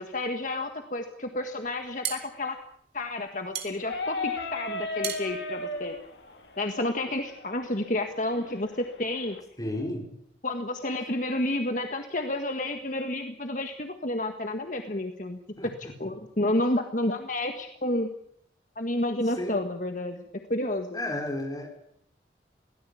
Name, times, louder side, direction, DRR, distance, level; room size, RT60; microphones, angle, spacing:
voice 1, 0.0-2.6 2.9-6.0 6.6-9.4 10.4-15.4 15.8-18.1 18.8-20.2 20.5-21.0, left 1 dB, 45° left, 5 dB, 1.7 m, -30 dB
sound 1, 1.7-6.6, right 9 dB, 65° right, 3.6 m, -38 dB
sound 2, 3.8-9.4, left 3 dB, 80° left, 3.2 m, -36 dB
voice 2, 9.6-10.1 15.6-15.9 19.4-19.6 20.9-21.7, left 1 dB, 20° left, 1 dB, 5.5 m, -32 dB
23.0 x 17.5 x 8.6 m, 0.68 s
head